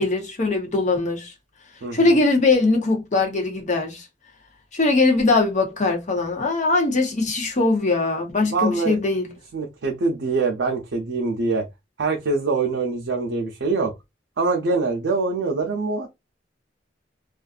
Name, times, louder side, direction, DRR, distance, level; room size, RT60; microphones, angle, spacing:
voice 1, 0.0-1.3 1.9-4.1 4.7-9.3, left 3 dB, 45° left, 0.7 m, -21 dB
voice 2, 1.8-2.2 8.4-9.0 9.5-11.7 12.0-13.9 14.4-16.1, right 3 dB, 80° right, 0.5 m, -24 dB
2.5 x 2.3 x 2.3 m
head